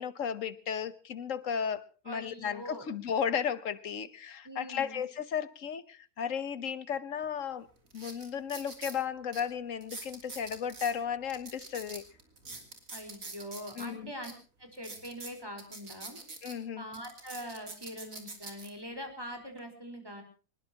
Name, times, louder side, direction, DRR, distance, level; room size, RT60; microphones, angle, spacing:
voice 1, 0.0-7.7 7.9-12.0 13.8-14.1 16.4-16.8, left 7 dB, 60° left, 1.4 m, -34 dB
voice 2, 2.0-2.8 4.4-5.0 12.9-14.3 14.6-16.2 16.8-20.2, equal, 15° right, 4.4 m, -43 dB
sound 1, 7.2-7.3 7.9-9.0 9.3-9.4 9.8-10.9 11.3-13.9 14.2-14.3 14.7-16.5 16.9-18.7 19.3-19.6, right 3 dB, 65° right, 3.5 m, -45 dB
24.0 x 20.5 x 2.9 m
omnidirectional pair, 1.5 m